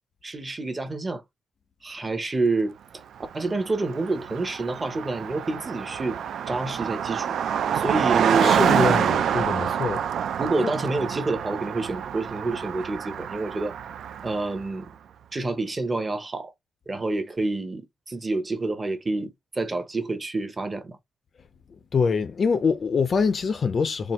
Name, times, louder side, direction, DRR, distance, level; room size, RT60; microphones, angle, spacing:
voice 1, 0.2-1.2 1.8-2.8 3.3-6.2 6.5-7.3 7.7-8.6 10.4-13.7 14.2-14.9 15.3-16.5 16.9-21.0, right 3 dB, 20° right, 0.7 m, -28 dB
Car passing by, 3.3-3.4 3.6-14.6, right 8 dB, 70° right, 0.4 m, -26 dB
voice 2, 8.4-10.0 10.6-10.7 21.9-24.1, left 5 dB, 35° left, 0.4 m, -24 dB
4.3 x 2.5 x 3.1 m
wide cardioid pair, 175°, 0 cm